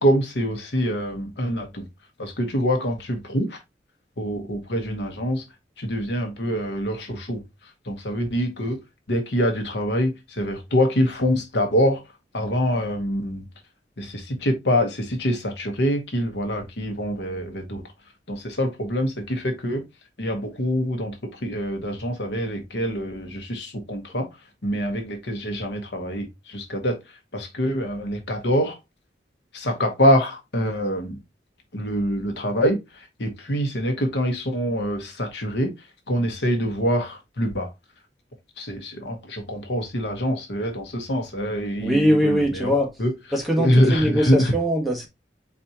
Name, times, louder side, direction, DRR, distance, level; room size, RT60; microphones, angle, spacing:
voice 1, 0.0-1.8 2.2-3.6 4.2-5.4 5.8-7.4 7.9-8.8 9.1-12.0 12.3-13.4 14.0-17.8 18.3-19.8 20.2-24.2 24.6-27.0 27.3-28.8 29.5-31.2 31.7-32.8 33.2-35.7 36.1-37.7 38.6-42.7 43.0-43.1 43.6-44.5, equal, 70° left, 1.1 m, -25 dB
voice 2, 41.8-42.9 43.3-45.1, equal, ahead, 1.3 m, -21 dB
4.3 x 4.2 x 2.9 m
head